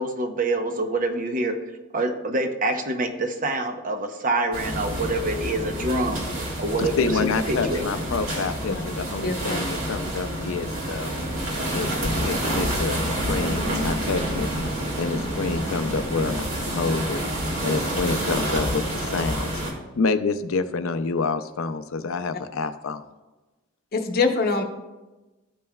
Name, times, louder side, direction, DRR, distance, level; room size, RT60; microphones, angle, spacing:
voice 1, 0.0-1.6 1.9-6.3 6.6-7.9, right 2 dB, 40° right, 6 dB, 0.8 m, -26 dB
sound 1, 4.5-19.7, right 1 dB, 75° right, 1.9 m, -28 dB
voice 2, 6.8-11.1 11.7-14.5 15.0-17.2 17.6-19.5 19.9-23.0, left 4 dB, 75° left, 10 dB, 0.5 m, -28 dB
voice 3, 9.2-9.6 23.9-24.6, left 4 dB, 45° left, 4 dB, 0.8 m, -23 dB
13.5 x 5.4 x 2.3 m, 1.1 s
head